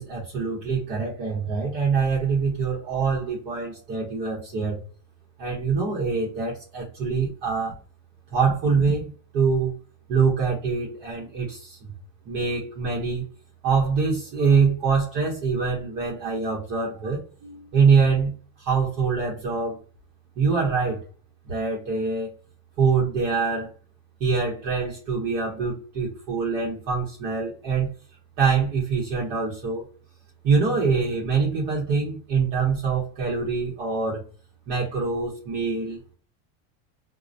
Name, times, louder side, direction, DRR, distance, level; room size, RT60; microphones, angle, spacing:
voice 1, 0.0-4.8 5.4-7.7 8.3-9.7 10.1-11.9 12.3-13.2 13.6-18.3 18.6-19.8 20.4-21.0 21.5-22.3 22.8-23.7 24.2-27.9 28.4-29.8 30.4-34.2 34.7-36.1, right 5 dB, 65° right, -3 dB, 1.0 m, -24 dB
2.2 x 2.1 x 2.6 m, 0.38 s
supercardioid pair, 130°, 42 cm